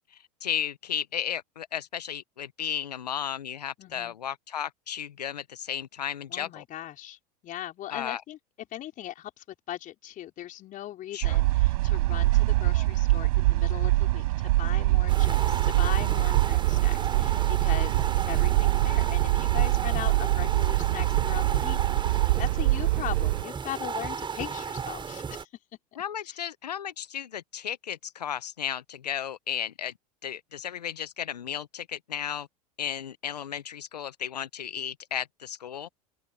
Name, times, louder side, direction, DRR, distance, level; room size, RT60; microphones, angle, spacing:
voice 1, 0.1-6.6 7.9-8.2 11.1-11.4 26.0-29.9 30.2-32.5 32.8-35.9, left 9 dB, 85° left, 0.9 m, -34 dB
voice 2, 3.8-4.2 6.3-22.1 22.4-25.5 26.2-26.4, left 13 dB, 40° left, 4.9 m, -39 dB
sound 1, 11.2-23.4, right 18 dB, 65° right, 4.6 m, -24 dB
sound 2, 15.1-25.4, right 6 dB, 25° right, 7.7 m, -34 dB
open air
hypercardioid pair, 85°, 20 cm